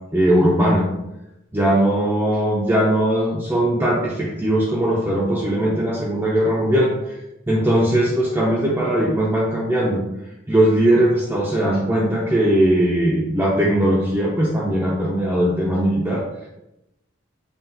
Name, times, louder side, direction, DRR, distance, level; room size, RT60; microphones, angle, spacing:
voice 1, 0.1-0.8 1.5-7.2 7.5-10.0 10.5-16.2, right 1 dB, 10° right, -5 dB, 0.4 m, -19 dB
5.6 x 2.4 x 2.7 m, 0.92 s
head